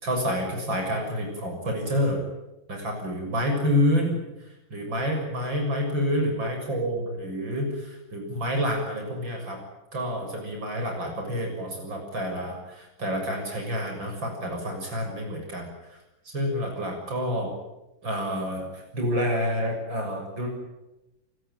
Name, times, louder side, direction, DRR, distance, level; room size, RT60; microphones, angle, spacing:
voice 1, 0.0-2.2 2.7-9.6 9.9-16.0 16.3-17.5 18.0-20.5, equal, 75° right, 2 dB, 7.4 m, -28 dB
29.0 x 19.5 x 9.4 m, 0.96 s
omnidirectional pair, 2.1 m